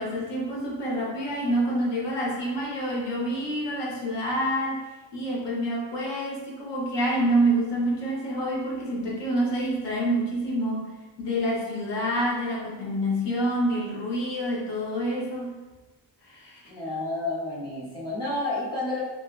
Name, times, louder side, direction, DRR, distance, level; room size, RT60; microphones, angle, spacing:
voice 1, 0.0-10.9 11.2-15.6 16.2-16.6, right 1 dB, 65° left, -3 dB, 1.0 m, -27 dB
voice 2, 16.7-19.0, left 2 dB, 10° left, -8 dB, 1.3 m, -30 dB
3.4 x 2.7 x 2.4 m, 1.2 s
cardioid pair, 115°, 45 cm